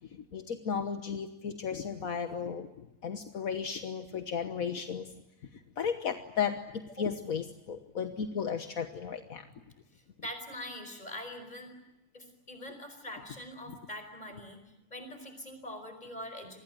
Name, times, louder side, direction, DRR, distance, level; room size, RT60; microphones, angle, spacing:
voice 1, 0.3-2.7 3.0-5.1 5.8-9.4, left 7 dB, 70° left, 7 dB, 1.6 m, -34 dB
voice 2, 9.9-11.7 12.1-14.6 14.9-16.6, equal, 30° left, 8 dB, 5.2 m, -43 dB
27.5 x 20.5 x 9.2 m, 0.95 s
omnidirectional pair, 1.5 m